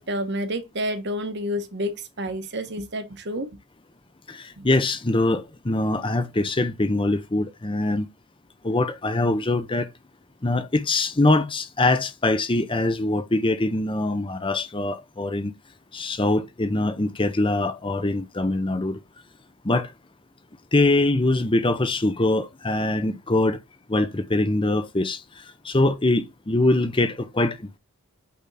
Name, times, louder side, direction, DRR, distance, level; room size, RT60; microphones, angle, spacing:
voice 1, 0.0-3.5 4.6-4.7, equal, 50° right, 1.2 m, -29 dB
voice 2, 4.3-8.1 8.6-9.9 10.4-15.5 15.9-19.0 19.6-19.9 20.7-23.6 23.9-27.8, left 2 dB, 25° left, 0.7 m, -23 dB
8.6 x 3.6 x 4.1 m
head